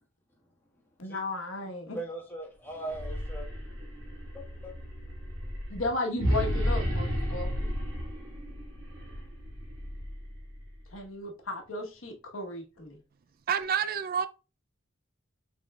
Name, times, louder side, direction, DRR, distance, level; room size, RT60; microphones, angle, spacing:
voice 1, 1.0-2.0 5.7-7.7 10.9-13.0, left 2 dB, 85° left, 1.1 m, -35 dB
voice 2, 1.9-3.5 4.3-4.7, right 1 dB, 10° left, 1.3 m, -39 dB
sound 1, 2.8-10.9, equal, 85° right, 1.8 m, -33 dB
voice 3, 13.5-14.3, right 7 dB, 45° right, 0.3 m, -28 dB
5.4 x 3.6 x 2.2 m
head